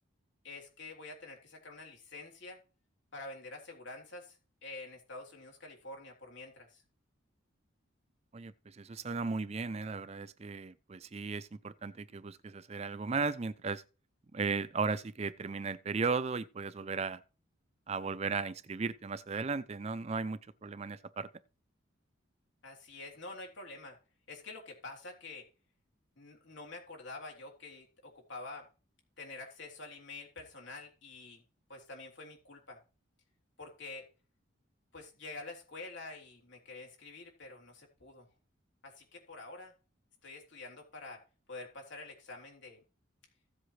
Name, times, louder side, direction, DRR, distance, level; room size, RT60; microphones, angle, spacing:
voice 1, 0.4-2.6 3.1-6.8 22.6-24.0 24.3-25.4 26.2-28.7 29.2-31.4 31.7-32.8 33.6-34.0 34.9-38.3 38.8-39.7 40.2-41.2 41.5-42.8, left 3 dB, 60° left, 3.4 m, -47 dB
voice 2, 8.3-13.8 14.3-17.2 17.9-21.3, right 4 dB, 30° right, 0.4 m, -36 dB
15.5 x 7.7 x 3.2 m
head